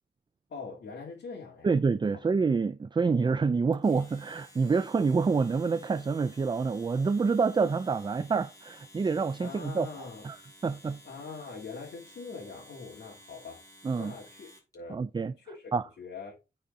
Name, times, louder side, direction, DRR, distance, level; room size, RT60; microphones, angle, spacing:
voice 1, 0.5-1.7 9.4-10.3 11.0-13.6 14.0-14.5 14.7-15.0 15.4-15.7 16.0-16.4, left 4 dB, 90° left, 2.1 m, -43 dB
voice 2, 1.6-9.9 10.2-10.4 10.6-11.0 13.8-14.1 14.9-15.3 15.7-15.8, right 4 dB, 25° right, 0.4 m, -27 dB
Domestic sounds home sounds, 3.7-14.8, left 1 dB, 20° left, 3.9 m, -55 dB
9.1 x 4.2 x 3.7 m
wide cardioid pair, 95°, 17 cm